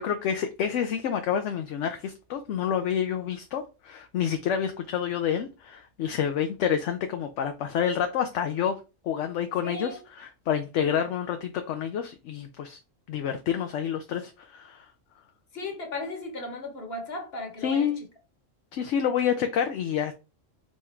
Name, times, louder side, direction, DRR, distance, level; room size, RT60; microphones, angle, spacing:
voice 1, 0.0-8.8 9.0-9.9 10.2-12.8 13.1-14.9 17.6-18.0 18.7-20.1, left 8 dB, 70° left, 0.9 m, -28 dB
voice 2, 9.6-10.0 15.5-17.9, left 2 dB, 50° left, 1.5 m, -36 dB
3.6 x 3.1 x 4.3 m
omnidirectional pair, 1.3 m